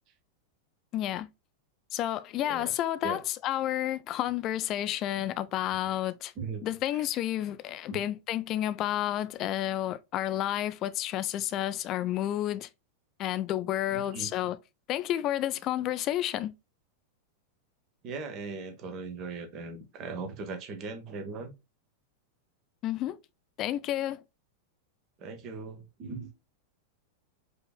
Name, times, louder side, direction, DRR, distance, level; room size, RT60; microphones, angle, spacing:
voice 1, 0.9-1.3 1.9-6.3 6.6-12.7 13.2-14.6 14.9-16.5 22.8-23.2 23.6-24.2, left 12 dB, 35° left, 0.3 m, -30 dB
voice 2, 2.4-2.8 3.0-3.2 6.4-7.1 7.9-8.0 13.9-14.3 18.0-21.5 25.2-26.3, right 4 dB, 35° right, 0.9 m, -39 dB
4.9 x 2.9 x 2.3 m
figure-of-eight pair, 90°, 0 cm